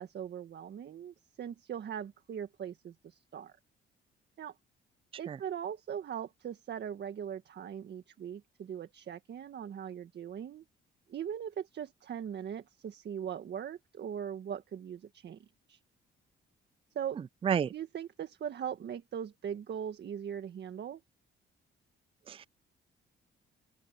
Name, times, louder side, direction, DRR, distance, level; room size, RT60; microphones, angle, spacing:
voice 1, 0.0-3.5 4.4-4.5 5.2-10.6 11.1-15.8 16.9-17.2 17.7-21.0, right 8 dB, 60° right, 1.7 m, -40 dB
voice 2, 17.4-17.7 22.3-22.5, right 8 dB, 30° right, 0.4 m, -30 dB
open air
cardioid pair, 90°, 20 cm